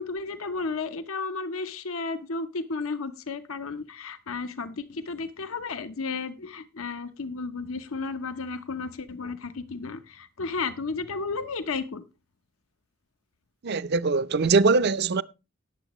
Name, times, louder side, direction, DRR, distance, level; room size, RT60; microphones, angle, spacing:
voice 1, 0.0-12.0, left 4 dB, 85° left, 0.8 m, -33 dB
voice 2, 13.6-15.2, right 4 dB, 55° right, 0.5 m, -22 dB
19.0 x 7.4 x 3.0 m
head